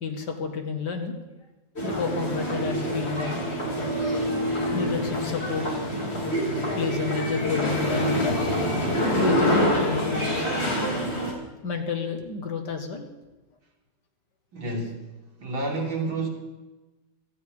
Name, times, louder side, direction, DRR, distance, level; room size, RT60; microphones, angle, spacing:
voice 1, 0.0-1.1 1.8-3.4 4.7-5.7 6.7-8.5 9.1-10.5 11.6-13.1, left 5 dB, 60° left, 4 dB, 2.3 m, -30 dB
sound 1, 1.8-11.3, equal, 30° left, 3.3 m, -26 dB
voice 2, 14.5-15.1 15.4-16.3, right 2 dB, 90° right, -1 dB, 3.6 m, -29 dB
17.0 x 14.0 x 5.2 m, 1.1 s
omnidirectional pair, 2.1 m